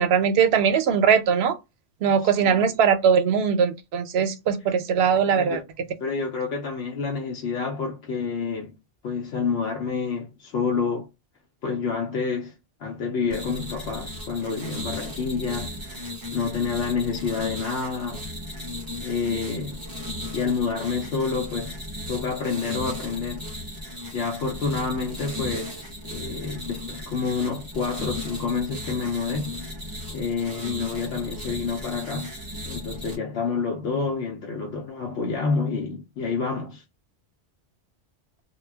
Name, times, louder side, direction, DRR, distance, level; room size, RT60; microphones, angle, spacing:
voice 1, 0.0-1.6 2.0-5.6, right 7 dB, 70° right, 0.8 m, -20 dB
voice 2, 2.2-2.6 5.2-5.6 6.0-8.7 9.0-11.1 11.6-12.5 12.8-18.2 19.0-19.8 20.3-21.8 22.1-23.5 23.8-29.5 30.1-32.3 32.6-36.8, left 5 dB, 70° left, 0.8 m, -28 dB
sound 1, 13.3-33.2, left 1 dB, 30° right, 0.4 m, -36 dB
2.2 x 2.1 x 3.3 m
omnidirectional pair, 1.2 m